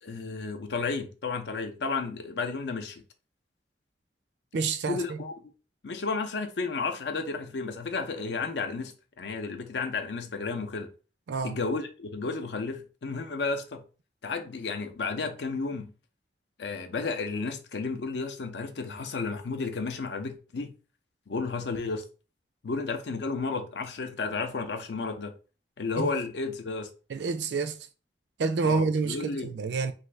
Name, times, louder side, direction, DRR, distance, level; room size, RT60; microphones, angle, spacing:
voice 1, 0.0-3.0 4.9-5.3 5.8-10.9 11.4-13.8 14.2-15.9 16.6-20.7 21.3-22.0 22.6-25.3 25.8-26.9 28.6-29.5, left 4 dB, 70° left, 0.5 m, -32 dB
voice 2, 4.5-5.2 11.3-11.6 26.0-26.1 27.1-27.9 28.4-29.9, right 4 dB, 75° right, 0.4 m, -28 dB
2.6 x 2.5 x 3.2 m
head